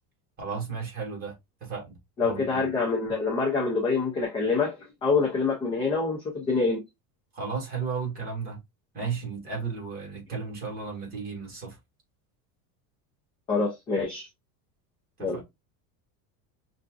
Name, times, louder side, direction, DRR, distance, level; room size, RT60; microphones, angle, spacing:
voice 1, 0.4-1.3 1.6-2.6 7.3-8.6 8.9-11.8 15.2-15.4, right 5 dB, 20° right, 1.8 m, -34 dB
voice 2, 2.2-4.7 5.0-6.8 13.5-14.3 15.2-15.4, left 4 dB, 15° left, 0.3 m, -26 dB
5.6 x 2.6 x 2.3 m
cardioid pair, 175°, 43 cm